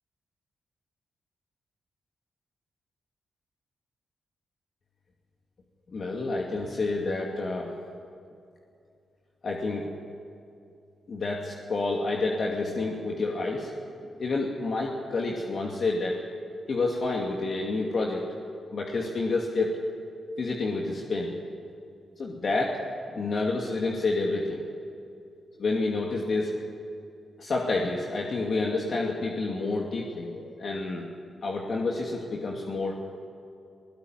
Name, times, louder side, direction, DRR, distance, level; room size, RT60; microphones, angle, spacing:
voice 1, 5.9-7.7 9.4-9.9 11.1-13.7 14.0-16.2 16.7-18.2 18.7-19.8 20.4-21.3 22.2-22.8 23.1-24.6 25.6-26.5 27.4-31.1 31.4-33.1, left 3 dB, 60° left, -1 dB, 2.6 m, -29 dB
19.0 x 18.0 x 9.5 m, 2.5 s
supercardioid pair, 50°, 0 cm